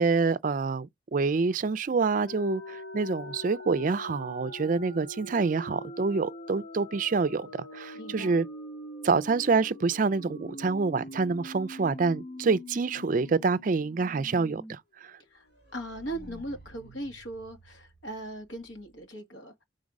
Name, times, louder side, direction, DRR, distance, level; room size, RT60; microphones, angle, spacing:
voice 1, 0.0-8.5 9.0-15.1, right 4 dB, 45° right, 0.4 m, -27 dB
sound 1, 2.2-14.7 15.1-15.2 15.5-18.2, left 1 dB, 60° left, 1.7 m, -44 dB
voice 2, 7.9-8.3 15.3-15.5 15.7-19.6, right 1 dB, 80° left, 1.7 m, -39 dB
4.8 x 3.9 x 5.2 m
head